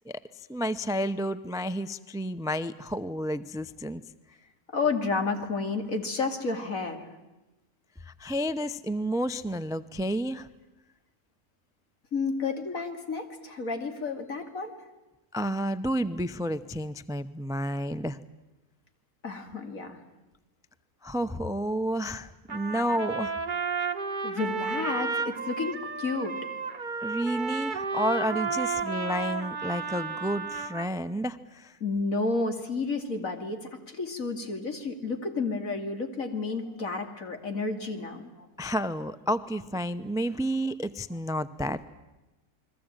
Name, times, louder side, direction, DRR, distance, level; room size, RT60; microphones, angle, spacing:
voice 1, 0.1-4.0 8.0-10.5 15.3-18.2 21.0-23.3 27.0-31.8 38.6-41.9, equal, 5° right, 14 dB, 0.4 m, -31 dB
voice 2, 4.7-7.0 12.1-14.7 19.2-20.0 24.2-26.4 31.8-38.5, left 3 dB, 60° left, 6 dB, 3.0 m, -31 dB
Trumpet, 22.5-30.9, right 4 dB, 35° right, 1.4 m, -32 dB
29.5 x 21.5 x 9.0 m, 1.0 s
omnidirectional pair, 1.6 m